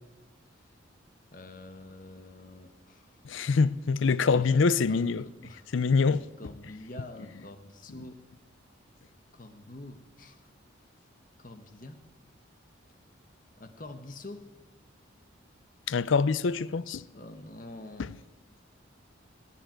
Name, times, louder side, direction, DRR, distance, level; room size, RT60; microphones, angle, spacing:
voice 1, 1.3-3.2 4.3-5.6 6.1-8.2 9.3-10.5 11.4-12.0 13.6-14.5 17.1-18.1, left 1 dB, 40° left, 1.3 m, -46 dB
voice 2, 3.2-5.2 5.7-6.2 15.9-17.0 18.0-18.1, left 4 dB, 70° left, 0.5 m, -25 dB
17.5 x 9.1 x 9.1 m
head